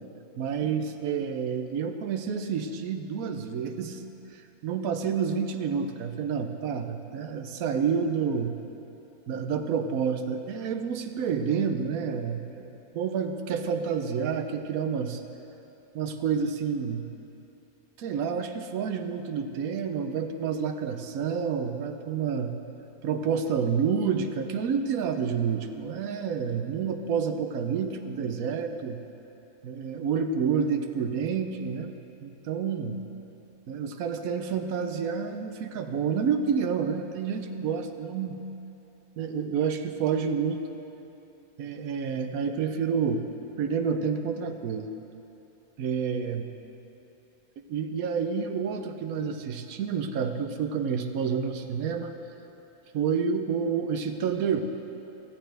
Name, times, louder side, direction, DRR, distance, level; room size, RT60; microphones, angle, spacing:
voice 1, 0.4-4.0 4.3-8.5 9.3-15.2 15.9-17.0 18.0-22.6 23.0-29.0 29.6-31.9 32.2-33.0 33.7-38.4 39.2-40.6 41.6-43.2 43.6-45.0 45.8-46.5 47.7-52.1 52.9-54.6, right 6 dB, 75° right, 7 dB, 1.2 m, -29 dB
15.5 x 13.5 x 3.4 m, 2.9 s
omnidirectional pair, 1.5 m